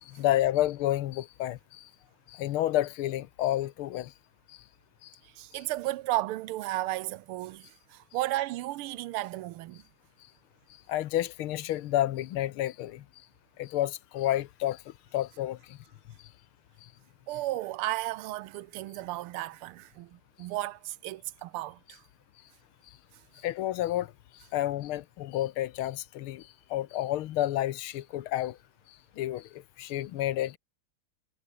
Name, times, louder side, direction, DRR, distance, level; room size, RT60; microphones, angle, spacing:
voice 1, 0.0-1.9 2.3-4.1 4.5-4.6 5.0-5.1 5.5-5.6 10.9-13.0 13.6-15.8 16.8-16.9 23.4-28.6 29.2-30.6, left 13 dB, 80° left, 1.7 m, -30 dB
voice 2, 5.3-9.8 17.3-22.0, right 16 dB, 85° right, 1.6 m, -34 dB
omnidirectional pair, 2.4 m